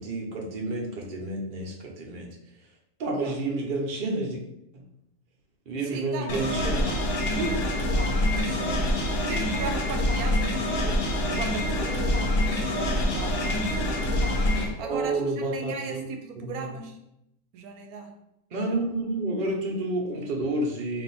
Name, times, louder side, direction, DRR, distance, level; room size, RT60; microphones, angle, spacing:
voice 1, 0.0-2.3 3.0-4.4 5.7-6.9 7.4-7.5 14.8-16.0 16.4-16.7 18.5-21.0, right 2 dB, 45° right, 0 dB, 0.7 m, -30 dB
voice 2, 5.8-14.1 14.8-17.0 17.5-18.1, right 5 dB, 80° right, 5 dB, 1.1 m, -38 dB
sound 1, 6.3-14.7, left 1 dB, 55° left, 0.7 m, -26 dB
3.4 x 2.6 x 4.1 m, 0.83 s
omnidirectional pair, 1.6 m